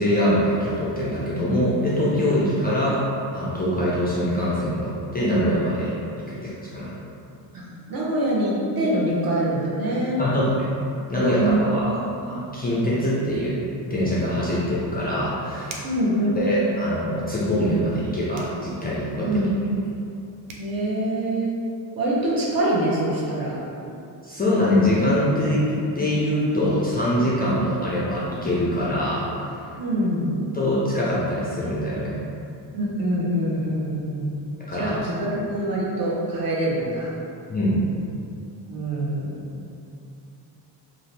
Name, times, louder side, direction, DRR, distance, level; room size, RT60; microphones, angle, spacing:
voice 1, 0.0-3.0 3.3-5.9 6.3-6.9 10.2-10.7 11.1-13.6 13.9-15.8 16.3-19.3 24.2-29.3 30.5-32.2 34.6-35.0 37.5-37.9, equal, 25° left, -8 dB, 0.3 m, -23 dB
voice 2, 7.5-10.2 11.3-11.9 12.2-12.4 15.8-16.4 19.2-19.5 20.6-21.5 22.0-23.6 29.8-30.4 32.7-34.4 34.7-37.1 38.7-39.4, right 1 dB, 50° right, -6 dB, 0.8 m, -25 dB
sound 1, 15.7-16.1 18.3-18.6 20.1-20.2 20.5-20.7, right 4 dB, 85° right, 0.5 m, -39 dB
2.6 x 2.5 x 3.2 m, 2.7 s
cardioid pair, 125°, 45 cm